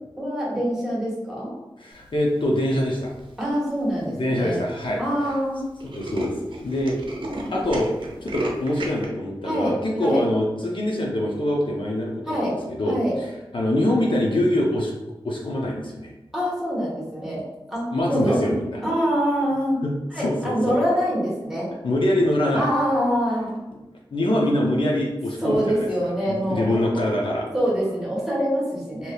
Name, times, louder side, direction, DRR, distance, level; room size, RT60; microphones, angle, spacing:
voice 1, 0.2-1.5 3.4-4.6 5.0-5.7 9.4-9.7 10.0-10.2 12.3-12.6 12.9-13.2 16.3-17.4 17.7-18.4 18.8-19.8 20.1-21.7 22.5-23.6 25.4-26.8 27.5-29.1, equal, 5° right, -6 dB, 1.2 m, -24 dB
voice 2, 1.8-3.1 4.2-5.0 5.8-7.0 7.5-7.9 8.2-14.9 15.2-16.1 17.9-18.8 19.8-20.7 21.8-22.7 24.1-25.9 26.3-27.5, left 1 dB, 60° left, -3 dB, 0.5 m, -24 dB
Tools, 3.0-3.4 4.0-4.1 4.4-4.5 4.7-4.9 5.2-5.3 5.6-9.1, right 1 dB, 60° right, 0.6 m, -33 dB
3.3 x 2.8 x 2.2 m, 1.0 s
wide cardioid pair, 85°, 10 cm